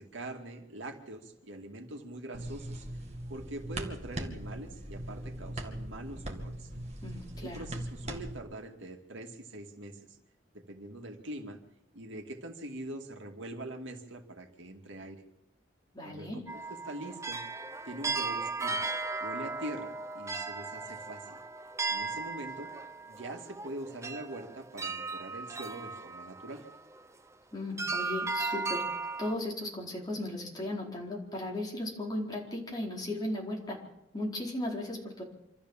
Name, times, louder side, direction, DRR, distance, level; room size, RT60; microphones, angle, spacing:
voice 1, 0.0-2.8 3.3-6.7 7.4-10.0 10.5-11.6 11.9-15.2 16.0-17.4 17.9-18.8 19.2-21.4 21.9-22.7 23.1-26.7, right 1 dB, 75° right, 3 dB, 2.4 m, -43 dB
sound 1, 2.3-8.4, right 1 dB, 35° right, 2.3 m, -40 dB
voice 2, 7.0-7.6 15.9-16.4 27.5-28.8 29.2-33.8 34.1-35.2, left 1 dB, 20° left, -2 dB, 4.5 m, -36 dB
sound 2, 16.5-27.0 27.8-29.3, right 3 dB, 15° right, 0.8 m, -36 dB
26.5 x 13.5 x 7.3 m, 0.86 s
head